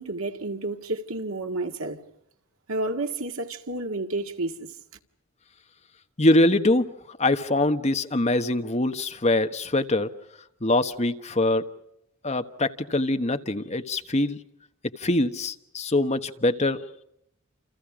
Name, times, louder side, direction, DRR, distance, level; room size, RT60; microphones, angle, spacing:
voice 1, 0.0-2.0 2.7-4.7, right 2 dB, 80° right, 1.9 m, -30 dB
voice 2, 6.2-10.1 10.6-11.6 12.2-14.4 15.0-16.8, left 2 dB, 30° left, 1.2 m, -23 dB
29.0 x 28.5 x 5.0 m
head